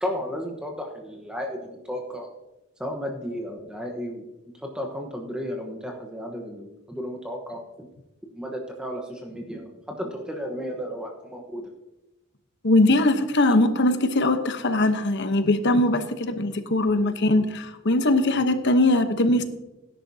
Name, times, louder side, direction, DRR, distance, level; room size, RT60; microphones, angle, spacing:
voice 1, 0.0-2.3 2.8-4.3 4.6-7.6 8.3-11.7, equal, 5° right, 1 dB, 1.1 m, -33 dB
voice 2, 12.6-19.4, left 2 dB, 55° left, 9 dB, 1.0 m, -21 dB
17.5 x 10.5 x 2.8 m, 1.0 s
head